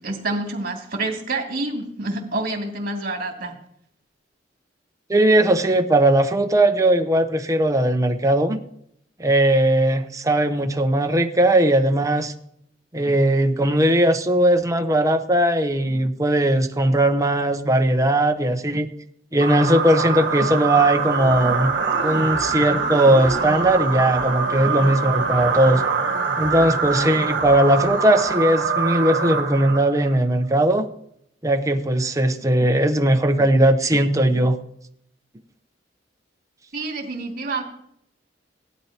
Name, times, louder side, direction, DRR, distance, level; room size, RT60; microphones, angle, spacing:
voice 1, 0.0-3.5 36.7-37.6, right 2 dB, 50° right, 1 dB, 2.6 m, -27 dB
voice 2, 5.1-8.6 9.2-12.3 12.9-18.9 19.3-21.7 22.0-25.8 26.4-30.9 31.4-34.6, right 1 dB, 20° right, 6 dB, 0.9 m, -19 dB
sound 1, 19.4-30.1, right 4 dB, 70° right, 1.3 m, -24 dB
17.5 x 12.5 x 2.9 m, 0.72 s
head